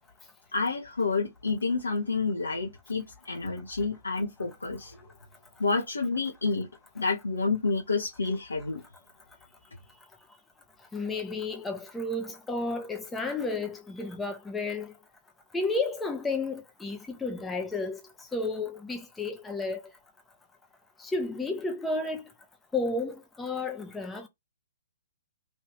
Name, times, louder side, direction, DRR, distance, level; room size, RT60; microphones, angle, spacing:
voice 1, 0.5-5.0 5.6-6.7 6.9-8.8, left 4 dB, 75° left, 0.9 m, -29 dB
voice 2, 10.9-14.9 15.5-18.0 18.3-19.8 21.0-22.2 22.7-24.3, left 3 dB, 10° left, 0.8 m, -32 dB
3.2 x 2.7 x 3.1 m
figure-of-eight pair, 125°, 0 cm